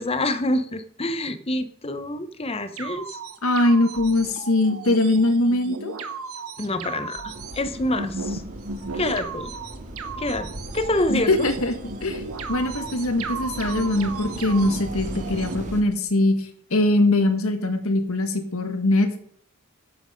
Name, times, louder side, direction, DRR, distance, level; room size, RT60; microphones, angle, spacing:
voice 1, 0.0-3.2 6.6-8.4 8.9-9.5 10.2-10.5 10.7-11.5, left 1 dB, 25° left, 10 dB, 0.9 m, -26 dB
sound 1, 2.8-15.6, right 4 dB, 85° right, 1.2 m, -35 dB
voice 2, 3.4-5.9 11.1-11.7 12.0-19.2, left 2 dB, 80° left, 7 dB, 1.7 m, -22 dB
sound 2, 7.3-15.8, right 1 dB, 35° right, 2.0 m, -38 dB
11.5 x 8.0 x 5.2 m, 0.62 s
head